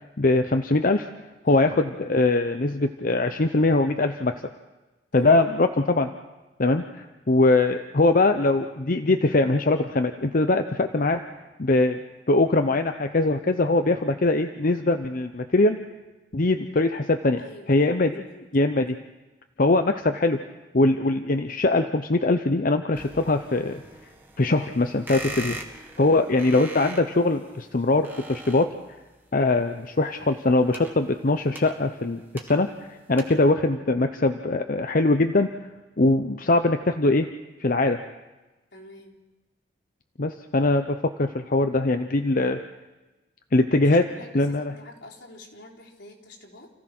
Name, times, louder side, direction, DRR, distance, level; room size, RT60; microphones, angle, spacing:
voice 1, 0.2-1.1 1.4-4.4 5.1-6.1 6.6-11.2 11.6-12.0 12.3-15.8 16.3-17.4 17.7-18.2 18.5-19.0 19.6-20.4 20.7-23.8 24.4-25.6 26.0-28.7 29.3-32.7 33.1-35.5 36.0-37.3 37.6-38.0 40.2-42.6 43.5-44.1 44.3-44.7, left 2 dB, 50° left, 7 dB, 0.8 m, -22 dB
voice 2, 5.1-5.5 17.4-18.5 26.0-26.3 38.7-39.2 43.7-46.7, left 1 dB, 80° left, -2 dB, 4.0 m, -46 dB
sound 1, 22.9-29.1 30.3-32.9 33.2-33.5, right 1 dB, 10° right, 1.9 m, -41 dB
29.5 x 15.5 x 6.1 m, 1.1 s
head